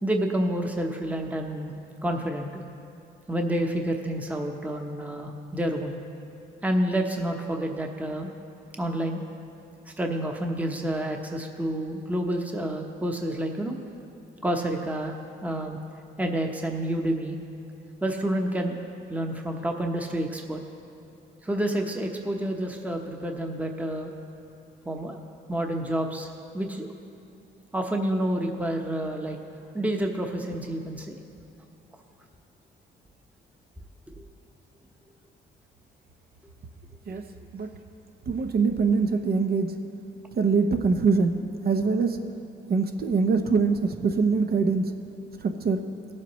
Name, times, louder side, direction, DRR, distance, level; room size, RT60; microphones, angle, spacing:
voice 1, 0.0-1.7 2.0-2.6 3.3-6.0 6.6-8.3 8.8-9.2 10.0-13.8 14.4-15.2 15.4-15.8 16.2-17.4 18.0-18.8 19.1-20.6 21.4-24.1 24.8-25.2 25.5-26.3 26.5-26.9 27.7-29.4 29.7-31.2 34.2-34.3, right 1 dB, 5° right, 2 dB, 0.9 m, -29 dB
voice 2, 38.3-39.7 40.3-41.4 41.6-42.2 42.7-44.9 45.4-45.8, right 4 dB, 50° right, 6 dB, 0.8 m, -23 dB
17.5 x 7.5 x 3.1 m, 2.6 s
cardioid pair, 90°, 20 cm